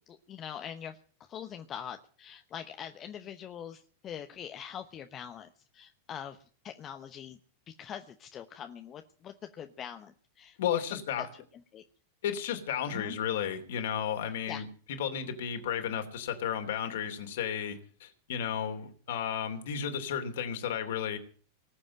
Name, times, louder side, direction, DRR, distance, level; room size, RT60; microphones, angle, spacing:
voice 1, 0.1-1.0 1.3-5.5 5.7-6.4 6.6-7.4 7.8-11.3 11.7-11.8 12.9-13.2 14.5-14.7, left 9 dB, 30° left, 7 dB, 1.0 m, -43 dB
voice 2, 10.6-11.3 12.2-14.7 15.0-21.2, left 8 dB, 55° left, 6 dB, 3.0 m, -33 dB
19.5 x 7.7 x 8.9 m, 0.43 s
figure-of-eight pair, 90°, 0 cm